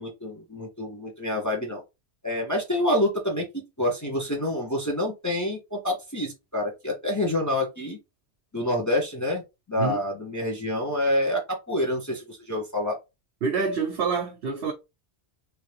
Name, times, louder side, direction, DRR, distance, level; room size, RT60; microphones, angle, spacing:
voice 1, 0.0-1.8 2.2-8.0 8.5-9.4 9.7-13.0, left 1 dB, 15° left, 0.8 m, -27 dB
voice 2, 13.4-14.7, right 5 dB, 60° right, 0.8 m, -27 dB
3.1 x 2.7 x 3.2 m
omnidirectional pair, 1.2 m